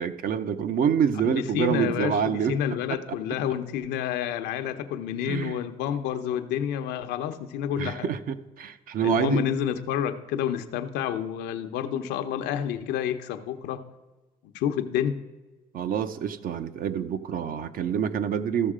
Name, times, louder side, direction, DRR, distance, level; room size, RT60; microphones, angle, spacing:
voice 1, 0.0-2.6 5.3-5.6 7.8-9.4 15.7-18.7, right 8 dB, 55° right, 11 dB, 0.7 m, -27 dB
voice 2, 1.2-8.1 9.0-13.8 14.5-15.2, left 9 dB, 90° left, 8 dB, 0.8 m, -29 dB
14.0 x 6.5 x 4.9 m, 1.2 s
cardioid pair, 110°, 17 cm